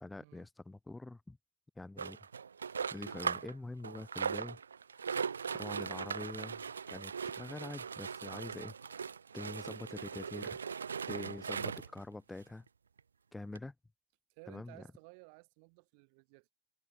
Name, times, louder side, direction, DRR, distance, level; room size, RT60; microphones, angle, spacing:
voice 1, 0.0-1.4 1.8-2.2 2.9-4.6 5.5-6.6 6.9-8.7 9.3-10.6 11.1-12.6 13.3-13.7 14.5-14.8, left 2 dB, 10° left, 0.3 m, -45 dB
sound 1, 2.0-3.5 3.8-12.0 12.7-12.8 13.0-13.1 13.6-13.7, right 6 dB, 85° right, 0.5 m, -39 dB
voice 2, 14.3-16.5, right 36 dB, 60° right, 3.7 m, -57 dB
hypercardioid pair, 85°, 0 cm